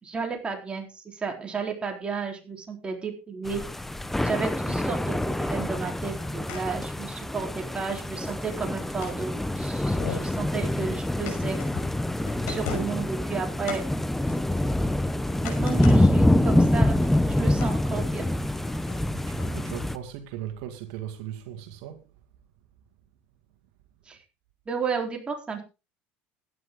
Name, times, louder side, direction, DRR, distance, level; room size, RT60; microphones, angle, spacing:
voice 1, 0.0-3.6 4.2-11.6 12.5-13.8 15.4-17.0 17.3-18.3 24.1-24.2 24.7-25.6, right 5 dB, 20° right, 3.9 m, -33 dB
sound 1, 3.4-20.0, left 1 dB, 5° left, 0.9 m, -26 dB
sound 2, 6.2-6.6 7.0-7.1 7.5-7.6 8.2-9.2 9.6-9.7 9.9-10.4 11.3-12.0 12.3-13.1 13.6-13.8 14.2-15.0 15.3-16.0 16.4-16.5 16.9-17.7 18.7-19.0 19.4-19.5, left 7 dB, 70° left, 5.9 m, -38 dB
voice 2, 19.1-22.0, right 10 dB, 80° right, 2.1 m, -38 dB
15.5 x 10.0 x 3.8 m
supercardioid pair, 115°, 5 cm